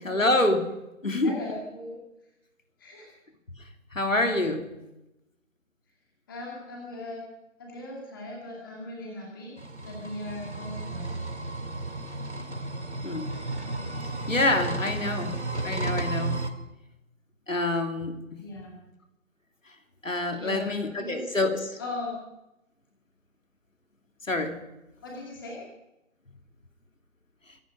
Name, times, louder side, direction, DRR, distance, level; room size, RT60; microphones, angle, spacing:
voice 1, 0.0-0.6 1.0-1.3 3.9-4.6 13.0-13.3 14.3-15.3 15.6-16.4 17.5-18.1 20.0-21.8 24.3-24.5, left 2 dB, 70° left, 5 dB, 2.8 m, -26 dB
voice 2, 1.2-2.0 2.8-3.1 6.3-7.2 7.6-9.6 9.8-11.2 18.4-18.8 20.4-21.3 21.8-22.2 25.0-25.6, left 2 dB, 15° left, -2 dB, 2.3 m, -38 dB
sound 1, 9.6-16.5, right 2 dB, 55° right, 2.1 m, -33 dB
25.5 x 11.0 x 5.2 m, 0.93 s
figure-of-eight pair, 155°, 41 cm